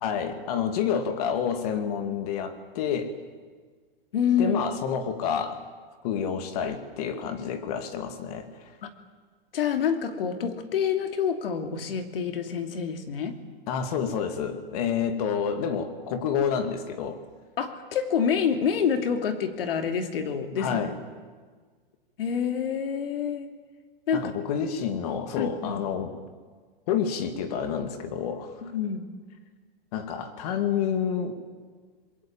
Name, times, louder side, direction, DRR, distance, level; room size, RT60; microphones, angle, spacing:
voice 1, 0.0-3.1 4.4-5.6 6.0-8.5 13.7-17.2 20.6-21.0 24.1-26.2 26.9-28.6 29.9-31.4, left 7 dB, 40° left, 9 dB, 2.4 m, -29 dB
voice 2, 4.1-4.6 8.8-8.9 9.5-13.4 17.6-20.8 22.2-23.5 24.1-24.3 25.4-25.8 28.6-29.1, left 7 dB, 70° left, 7 dB, 2.8 m, -27 dB
26.0 x 21.5 x 8.8 m, 1.5 s
supercardioid pair, 165°, 30 cm